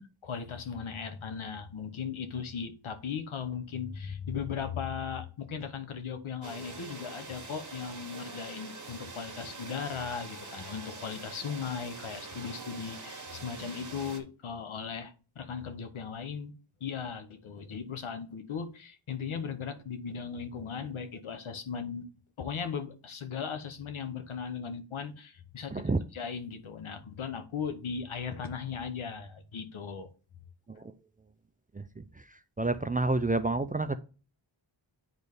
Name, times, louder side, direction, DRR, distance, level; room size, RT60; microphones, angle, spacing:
voice 1, 0.2-16.5 16.8-22.1 22.4-30.1, left 6 dB, 85° left, 8 dB, 1.0 m, -37 dB
sound 1, 6.4-14.2, right 3 dB, 40° right, 1.5 m, -44 dB
voice 2, 32.6-34.0, right 2 dB, 20° right, 11 dB, 0.4 m, -28 dB
8.3 x 4.1 x 3.5 m, 0.36 s
wide cardioid pair, 65°, 47 cm